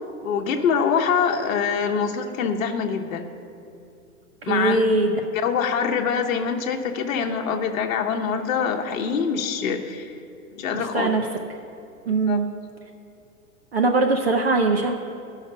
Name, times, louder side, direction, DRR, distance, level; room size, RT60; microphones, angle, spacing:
voice 1, 0.2-3.3 4.4-4.8 5.4-10.1 10.5-11.2 12.3-12.4, left 6 dB, 60° left, 3 dB, 1.0 m, -24 dB
voice 2, 4.4-5.1 10.7-11.3 12.1-12.5 13.7-14.9, right 3 dB, 40° right, 4 dB, 0.5 m, -21 dB
13.5 x 5.8 x 5.6 m, 2.6 s
hypercardioid pair, 175°, 47 cm